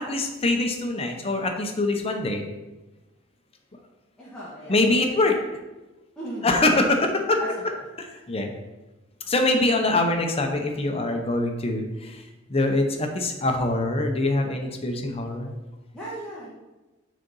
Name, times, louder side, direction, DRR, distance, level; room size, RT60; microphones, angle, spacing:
voice 1, 0.1-2.4 4.7-5.4 6.4-7.4 8.1-8.5 9.3-12.2 12.5-15.5, left 2 dB, 30° left, 3 dB, 0.8 m, -24 dB
voice 2, 4.2-5.1 6.1-6.9 7.4-7.8 15.9-16.5, right 1 dB, 5° left, -9 dB, 1.4 m, -37 dB
6.3 x 3.9 x 5.4 m, 1.1 s
head